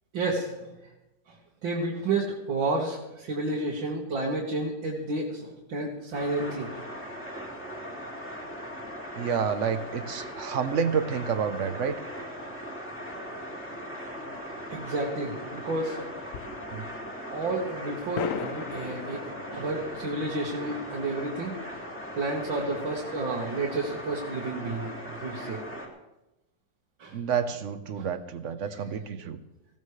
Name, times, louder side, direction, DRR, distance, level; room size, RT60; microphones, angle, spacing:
voice 1, 0.1-0.7 1.6-6.8 14.7-16.0 17.3-19.2 19.5-21.8 22.1-24.9 25.2-25.6 27.0-27.1 28.0-28.1, right 2 dB, 80° right, -3 dB, 2.4 m, -31 dB
sound 1, 6.1-25.9, equal, 5° left, 2.4 m, -39 dB
voice 2, 9.2-12.0 16.7-16.8 27.1-29.4, right 6 dB, 50° right, 10 dB, 1.0 m, -29 dB
sound 2, 16.3-17.1 17.4-17.5 18.1-21.2, left 8 dB, 65° left, 0.8 m, -38 dB
19.5 x 15.5 x 3.3 m, 0.98 s
omnidirectional pair, 2.0 m